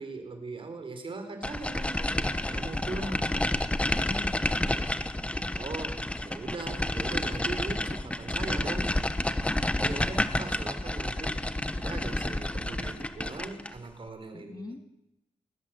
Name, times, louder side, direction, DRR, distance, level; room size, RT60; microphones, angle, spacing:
voice 1, 0.0-3.2 5.6-9.0 9.7-11.5 11.8-14.8, right 3 dB, 45° right, 6 dB, 4.3 m, -40 dB
sound 1, 1.4-13.8, left 1 dB, 10° left, 1.2 m, -30 dB
voice 2, 2.9-3.4 3.9-5.0 9.8-10.1 14.3-14.8, left 3 dB, 30° left, 7 dB, 2.0 m, -43 dB
20.0 x 20.0 x 7.8 m, 0.85 s
wide cardioid pair, 145°, 12 cm